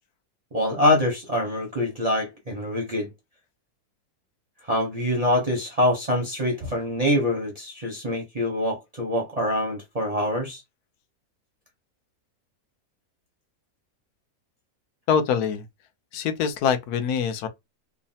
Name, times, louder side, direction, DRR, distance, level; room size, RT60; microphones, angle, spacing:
voice 1, 0.5-3.1 4.7-10.6, left 1 dB, 40° right, 0.5 m, -25 dB
voice 2, 15.1-15.6 16.1-17.5, left 7 dB, 80° left, 1.1 m, -24 dB
3.2 x 2.0 x 2.6 m
omnidirectional pair, 1.6 m